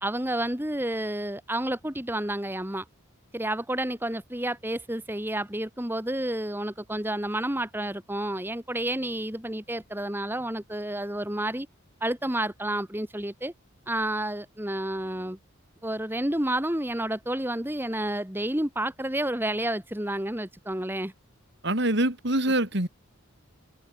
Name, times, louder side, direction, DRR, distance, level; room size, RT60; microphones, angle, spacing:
voice 1, 0.0-2.8 3.3-11.7 12.0-13.5 13.9-15.4 15.8-21.1, right 1 dB, 10° right, 1.8 m, -30 dB
voice 2, 21.6-22.9, right 1 dB, 55° right, 3.8 m, -24 dB
head